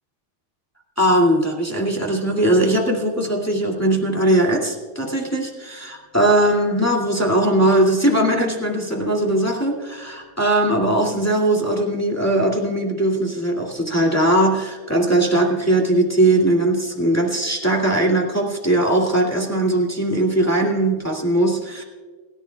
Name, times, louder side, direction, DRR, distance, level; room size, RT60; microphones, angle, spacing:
voice 1, 1.0-21.8, right 1 dB, 5° left, -1 dB, 1.3 m, -19 dB
28.5 x 12.5 x 2.3 m, 1.5 s
omnidirectional pair, 4.0 m